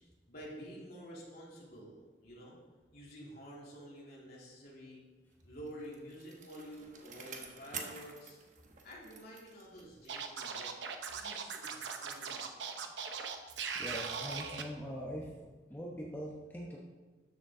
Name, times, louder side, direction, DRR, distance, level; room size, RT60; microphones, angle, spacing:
voice 1, 0.3-2.5 2.9-5.0 5.4-8.4 8.8-10.7 11.1-12.7, equal, 60° left, -5 dB, 3.2 m, -50 dB
Bicycle, 5.4-10.3 10.7-10.8, right 5 dB, 45° right, 1.1 m, -49 dB
Scratching (performance technique), 10.1-14.6, right 6 dB, 80° right, 0.9 m, -40 dB
voice 2, 13.8-16.8, equal, 10° left, -3 dB, 1.1 m, -42 dB
12.5 x 7.2 x 3.8 m, 1.3 s
head